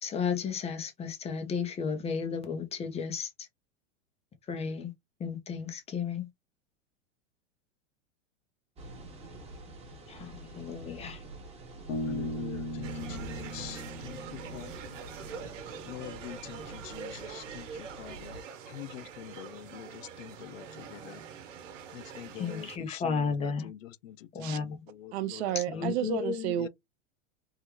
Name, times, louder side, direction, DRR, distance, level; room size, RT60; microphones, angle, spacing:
voice 1, 0.0-3.3 4.5-4.9 5.2-6.3 10.1-11.2 22.4-23.7 24.3-24.8 25.7-26.6, left 6 dB, 15° left, 0.7 m, -33 dB
sound 1, 8.8-18.4, right 2 dB, 15° right, 1.1 m, -46 dB
Bass guitar, 11.9-15.4, left 1 dB, 65° left, 1.3 m, -38 dB
voice 2, 12.0-14.7 15.9-18.3 18.7-21.2 21.9-25.1 26.6-26.7, left 13 dB, 85° left, 0.5 m, -45 dB
sound 2, 12.8-22.8, right 7 dB, 80° right, 1.0 m, -45 dB
voice 3, 25.1-26.7, right 12 dB, 55° right, 0.7 m, -31 dB
3.7 x 2.2 x 3.0 m
supercardioid pair, 135°, 37 cm